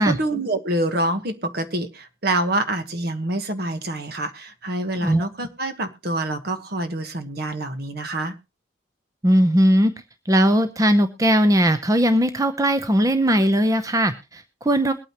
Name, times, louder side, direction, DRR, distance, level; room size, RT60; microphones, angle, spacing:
voice 1, 0.0-8.4, right 1 dB, 55° right, 9 dB, 1.3 m, -26 dB
voice 2, 9.2-9.9 10.3-14.9, equal, 15° right, 9 dB, 0.6 m, -19 dB
22.0 x 8.9 x 2.9 m, 0.28 s
head